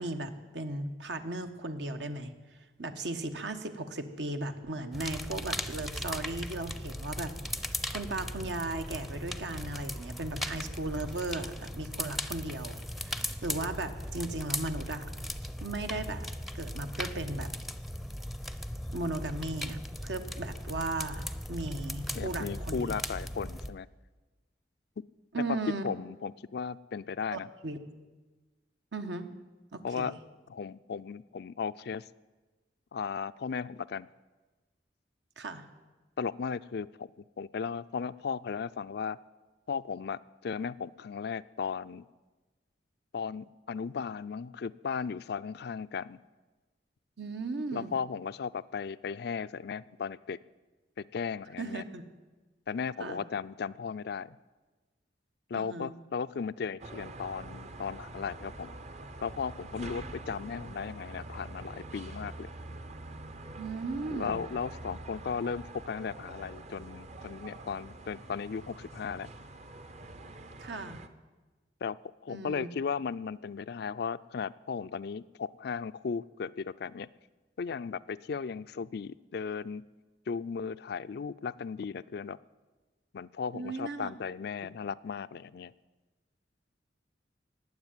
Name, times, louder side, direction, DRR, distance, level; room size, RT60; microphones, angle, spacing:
voice 1, 0.0-2.3 2.8-15.0 15.6-16.3 16.5-17.5 18.9-23.0 25.3-25.8 27.3-27.8 28.9-29.3 29.7-30.2 35.4-35.6 47.2-47.9 51.6-52.0 53.0-53.2 55.5-55.9 63.6-64.4 70.6-71.0 72.3-72.7 83.5-84.1, right 2 dB, 75° right, 7 dB, 1.3 m, -36 dB
sound 1, 4.9-23.7, left 1 dB, ahead, 0.6 m, -38 dB
voice 2, 22.1-23.9 25.5-25.6 25.8-27.5 29.8-30.1 30.5-32.1 32.9-34.1 36.2-39.2 39.7-42.1 43.1-46.2 47.7-50.4 51.0-51.8 52.7-54.4 55.5-58.7 59.2-62.5 64.1-69.3 71.8-72.0 72.2-77.1 77.6-79.8 80.3-82.4 83.1-85.7, left 6 dB, 60° left, 17 dB, 0.4 m, -36 dB
sound 2, 56.8-71.1, right 2 dB, 40° right, 0.8 m, -45 dB
19.0 x 7.8 x 9.0 m, 1.2 s
head